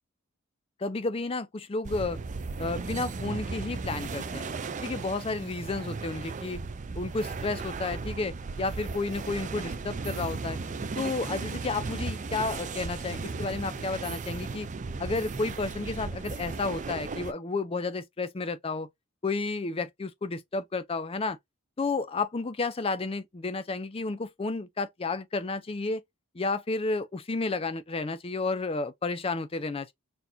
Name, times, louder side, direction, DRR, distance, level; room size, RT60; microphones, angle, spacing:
voice 1, 0.8-2.2 2.6-4.5 4.8-6.6 7.0-10.6 11.0-14.7 15.0-18.9 19.2-21.4 21.8-26.0 26.3-29.9, left 3 dB, 25° left, 0.5 m, -31 dB
sound 1, 1.8-17.3, right 4 dB, 35° right, 0.5 m, -36 dB
4.2 x 2.3 x 2.6 m
head